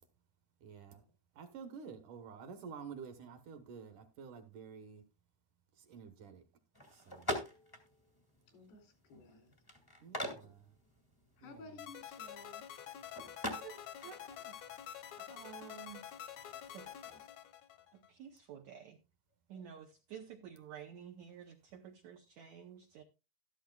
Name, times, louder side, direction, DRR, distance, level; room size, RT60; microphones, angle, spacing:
voice 1, 0.6-1.1 1.4-5.0 5.8-6.4 6.9-7.3 10.0-10.7 11.4-11.7, right 6 dB, 65° right, 2.2 m, -50 dB
sound 1, 6.7-17.2, equal, 25° left, 0.4 m, -46 dB
voice 2, 8.5-9.5 11.4-12.6, left 3 dB, 85° left, 4.7 m, -55 dB
sound 2, 11.8-18.1, left 10 dB, 70° left, 1.8 m, -48 dB
voice 3, 13.6-14.5 15.2-16.0 16.5-16.9 17.9-19.0 19.5-23.0, right 8 dB, 85° right, 1.6 m, -51 dB
13.0 x 13.0 x 2.3 m
omnidirectional pair, 4.4 m